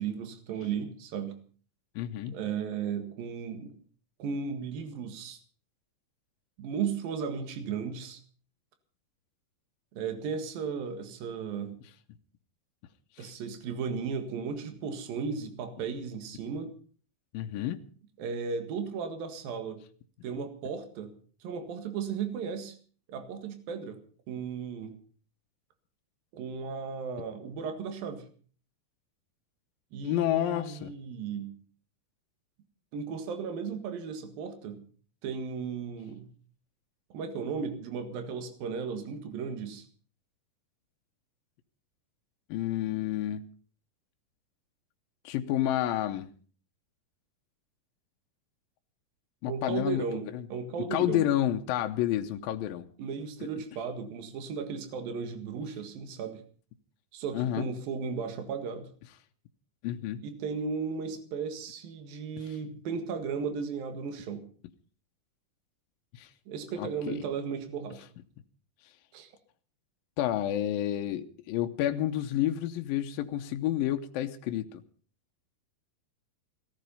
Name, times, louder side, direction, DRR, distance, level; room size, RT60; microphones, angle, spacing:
voice 1, 0.0-1.4 2.3-3.8 4.2-5.4 6.6-8.2 9.9-11.8 13.2-16.7 18.2-19.8 20.2-21.1 21.4-22.8 23.1-24.0 24.3-24.9 26.3-28.3 29.9-31.5 32.9-34.8 35.2-36.3 37.1-39.9 49.5-51.3 53.0-56.4 57.1-58.9 60.2-64.5 66.5-68.0 69.1-69.3, right 6 dB, 75° right, 7 dB, 3.5 m, -35 dB
voice 2, 2.0-2.4 13.2-13.3 17.3-17.8 30.0-30.9 42.5-43.4 45.2-46.3 49.4-50.5 50.9-52.9 57.3-57.7 59.8-60.2 66.1-66.3 66.8-67.2 70.2-74.8, left 12 dB, 75° left, 5 dB, 2.5 m, -30 dB
17.5 x 14.0 x 5.5 m, 0.43 s
omnidirectional pair, 4.3 m